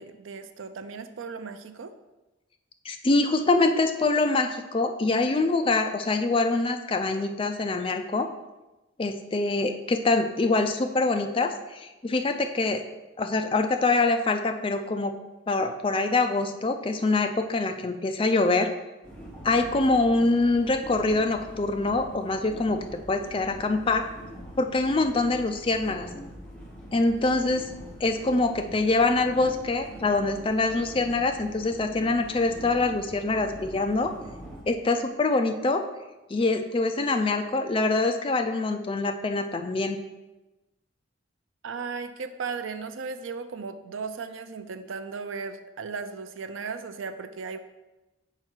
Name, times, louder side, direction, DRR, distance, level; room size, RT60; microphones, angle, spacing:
voice 1, 0.0-1.9 41.6-47.6, right 5 dB, 80° right, 9 dB, 0.5 m, -36 dB
voice 2, 2.9-8.3 9.0-12.8 13.2-15.1 15.5-18.7 19.4-24.1 24.6-26.1 26.9-27.7 28.0-34.1 34.7-35.8 36.3-40.0, left 3 dB, 25° left, 6 dB, 0.4 m, -24 dB
sound 1, 19.0-34.6, equal, 5° left, 1.0 m, -44 dB
5.7 x 4.8 x 4.5 m, 1.0 s
head